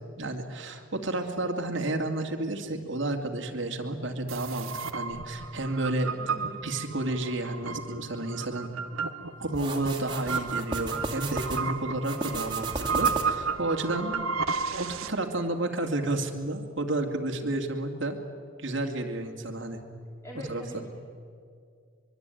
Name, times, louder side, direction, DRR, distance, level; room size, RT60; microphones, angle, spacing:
voice 1, 0.2-6.1 6.6-8.7 9.4-14.3 14.7-18.2 18.6-19.8 20.5-20.8, right 2 dB, 60° right, 3 dB, 2.4 m, -31 dB
sound 1, 4.3-15.1, right 5 dB, 80° right, 1.3 m, -33 dB
voice 2, 6.2-6.6 20.2-20.9, equal, 15° left, -2 dB, 2.6 m, -43 dB
sound 2, 9.5-11.6 12.0-13.5, right 3 dB, 20° right, 2.5 m, -35 dB
24.5 x 23.0 x 9.2 m, 2.2 s
head